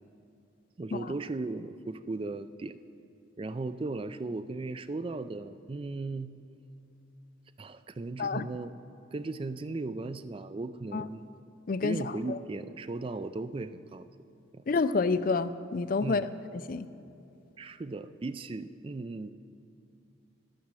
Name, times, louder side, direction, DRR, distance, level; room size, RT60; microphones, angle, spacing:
voice 1, 0.8-2.8 3.4-6.3 7.6-8.7 9.1-11.3 11.8-14.1 14.5-14.6 16.0-16.3 17.6-19.3, right 3 dB, 25° right, 13 dB, 0.3 m, -37 dB
voice 2, 11.7-12.4 14.7-16.3 16.5-16.9, left 4 dB, 45° left, 13 dB, 0.4 m, -29 dB
12.0 x 10.5 x 6.2 m, 2.8 s
head